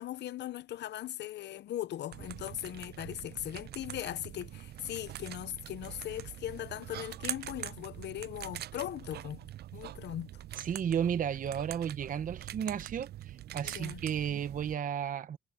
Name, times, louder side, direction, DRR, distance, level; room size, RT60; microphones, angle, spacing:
voice 1, 0.0-9.4 9.7-10.4 13.6-14.0, left 12 dB, 80° left, 0.6 m, -39 dB
sound 1, 2.1-14.8, right 13 dB, 65° right, 0.4 m, -44 dB
voice 2, 10.6-15.4, right 8 dB, 50° right, 0.8 m, -33 dB
wide cardioid pair, 145°, 18 cm